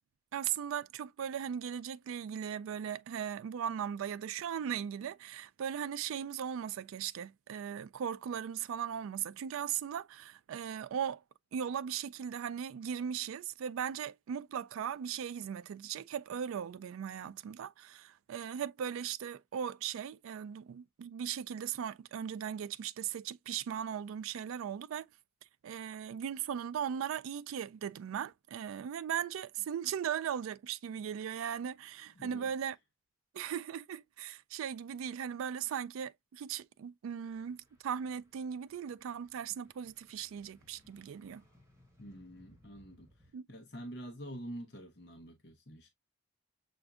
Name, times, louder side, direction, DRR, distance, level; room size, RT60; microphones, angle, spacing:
voice 1, 0.3-11.2 11.5-25.0 25.6-32.8 33.3-41.4 43.3-43.4, right 8 dB, 80° right, 0.3 m, -38 dB
voice 2, 32.2-32.5 42.0-43.1 43.5-45.9, equal, 55° left, 0.9 m, -46 dB
sound 1, 37.3-43.3, left 1 dB, 15° right, 1.1 m, -65 dB
6.8 x 2.5 x 2.3 m
head